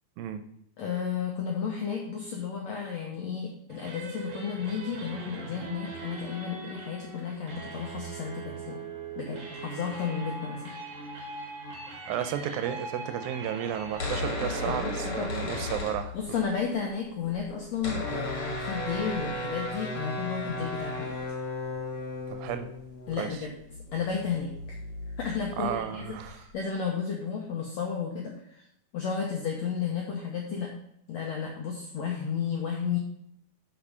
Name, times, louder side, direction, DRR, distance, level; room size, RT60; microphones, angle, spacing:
voice 1, 0.8-8.8 9.2-10.7 14.4-15.5 16.1-21.1 23.1-23.5 23.9-24.8 25.2-28.6 28.9-30.7 31.1-33.0, left 6 dB, 75° left, 0 dB, 1.5 m, -33 dB
sound 1, 3.7-14.8, right 3 dB, 55° right, 1.3 m, -41 dB
voice 2, 12.1-16.4 22.3-22.7 23.2-23.3 25.6-26.4, right 10 dB, 80° right, 10 dB, 2.3 m, -33 dB
sound 2, 13.8-16.6 16.9-17.0 17.1-26.6, left 2 dB, 45° left, 1.9 m, -35 dB
6.7 x 6.1 x 5.5 m, 0.74 s
omnidirectional pair, 4.3 m